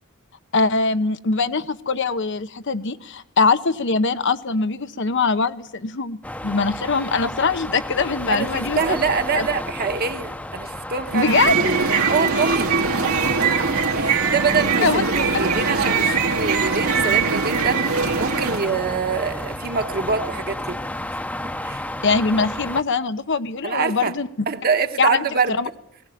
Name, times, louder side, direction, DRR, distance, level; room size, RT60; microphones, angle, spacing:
voice 1, 0.5-9.0 9.3-9.5 11.1-11.5 14.8-15.0 22.0-24.3 25.0-25.2 25.5-25.7, left 4 dB, 55° left, 0.8 m, -22 dB
sound 1, 6.2-22.8, left 1 dB, 5° left, 0.8 m, -32 dB
voice 2, 8.3-11.4 11.6-11.7 12.1-12.7 13.4-20.8 21.6-21.8 23.6-24.1 24.5-25.6, right 5 dB, 45° right, 1.3 m, -25 dB
sound 2, 11.1-18.7, right 4 dB, 85° right, 2.6 m, -21 dB
19.0 x 17.5 x 9.2 m
head